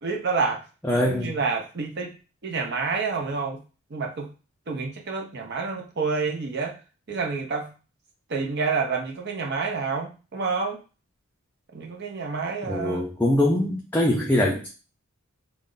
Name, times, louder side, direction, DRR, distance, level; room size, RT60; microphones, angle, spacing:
voice 1, 0.0-0.7 1.0-2.1 2.4-3.6 3.9-4.3 4.7-6.8 7.1-7.7 8.3-10.8 11.7-13.0, right 4 dB, 55° right, 2 dB, 0.7 m, -28 dB
voice 2, 0.9-1.3 12.7-14.7, left 1 dB, 10° left, -2 dB, 0.4 m, -23 dB
2.4 x 2.1 x 3.7 m, 0.33 s
head